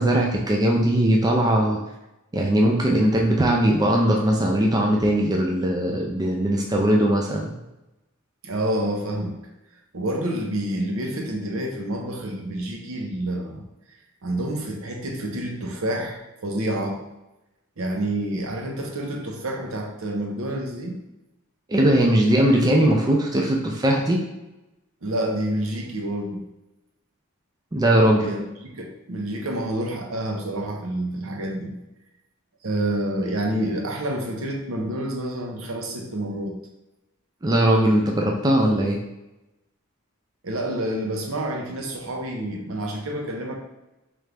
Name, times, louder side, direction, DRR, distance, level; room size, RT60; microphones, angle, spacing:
voice 1, 0.0-1.8 2.3-7.6 21.7-24.2 27.7-28.3 37.4-39.0, right 1 dB, 20° right, 0 dB, 0.4 m, -20 dB
voice 2, 8.4-9.4 9.9-13.6 14.2-17.0 17.8-21.0 25.0-26.4 28.2-31.7 32.6-36.6 40.4-43.6, right 1 dB, 65° right, 1 dB, 0.7 m, -28 dB
3.7 x 3.2 x 3.3 m, 0.95 s
head